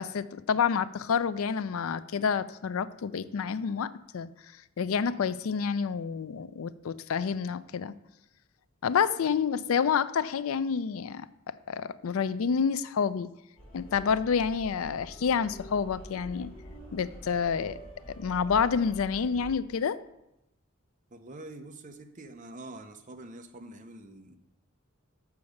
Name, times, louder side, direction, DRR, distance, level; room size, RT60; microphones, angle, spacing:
voice 1, 0.0-4.3 4.8-7.9 8.8-13.3 13.7-16.5 16.9-17.8 18.2-20.0, left 6 dB, 75° left, 15 dB, 0.4 m, -28 dB
sound 1, 13.6-19.6, equal, 25° left, 2.1 m, -46 dB
voice 2, 21.1-24.4, right 2 dB, 35° right, 6 dB, 0.7 m, -45 dB
7.0 x 5.9 x 6.4 m, 0.89 s
head